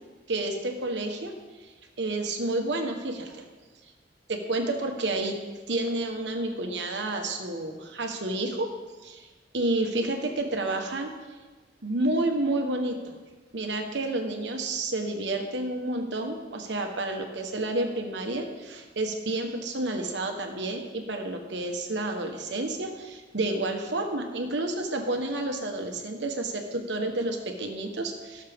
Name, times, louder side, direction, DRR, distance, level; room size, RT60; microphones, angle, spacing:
voice 1, 0.3-1.3 1.6-1.7 2.0-3.4 4.3-5.3 5.7-8.7 9.0-9.3 9.5-11.1 11.8-12.9 13.5-28.4, right 2 dB, 75° right, 4 dB, 1.3 m, -30 dB
17.5 x 6.5 x 3.6 m, 1.3 s
head